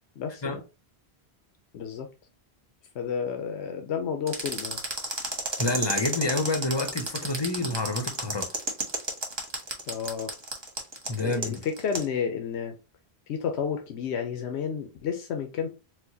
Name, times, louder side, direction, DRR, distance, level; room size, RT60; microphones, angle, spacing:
voice 1, 0.2-0.6 1.7-2.1 2.9-4.8 9.9-10.3 11.2-12.7 13.3-15.7, left 7 dB, 90° left, 0.9 m, -31 dB
sound 1, 4.3-12.1, right 2 dB, 30° right, 0.8 m, -31 dB
voice 2, 5.6-8.5 11.1-11.6, left 2 dB, 30° left, 0.5 m, -28 dB
4.3 x 2.2 x 2.6 m
omnidirectional pair, 1.1 m